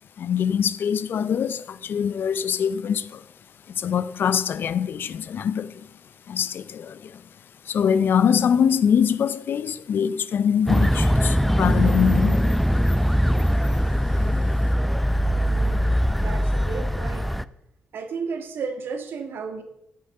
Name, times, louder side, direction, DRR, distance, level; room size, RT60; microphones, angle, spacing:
voice 1, 0.2-3.2 3.7-5.9 6.3-7.2 7.6-12.6, left 8 dB, 65° left, 0.5 m, -23 dB
sound 1, 10.7-17.4, equal, ahead, 0.5 m, -21 dB
voice 2, 15.5-17.3 17.9-19.6, right 5 dB, 70° right, 1.6 m, -33 dB
13.5 x 6.5 x 5.4 m
supercardioid pair, 55°, 4 cm